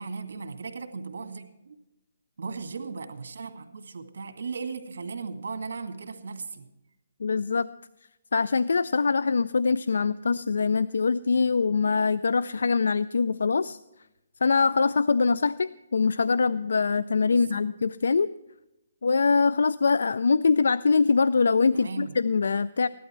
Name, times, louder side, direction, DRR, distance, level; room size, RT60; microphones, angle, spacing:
voice 1, 0.0-1.8 2.4-6.7 17.3-17.6 21.7-22.2, right 4 dB, 75° right, 6 dB, 2.0 m, -37 dB
voice 2, 7.2-7.7 8.3-13.8 14.4-18.3 19.0-22.9, left 4 dB, 85° left, 17 dB, 0.4 m, -23 dB
15.5 x 12.0 x 4.4 m, 0.93 s
hypercardioid pair, 165°, 0 cm